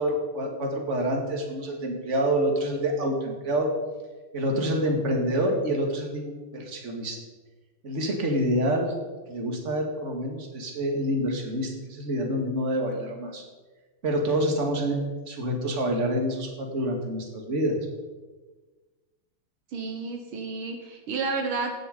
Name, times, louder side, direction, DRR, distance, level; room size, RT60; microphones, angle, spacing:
voice 1, 0.0-3.7 4.3-7.2 7.8-8.9 9.3-13.4 14.0-17.8, right 1 dB, 35° right, 2 dB, 2.3 m, -27 dB
voice 2, 19.7-21.8, right 4 dB, 70° right, 4 dB, 2.0 m, -31 dB
16.0 x 9.2 x 5.2 m, 1.3 s
omnidirectional pair, 2.4 m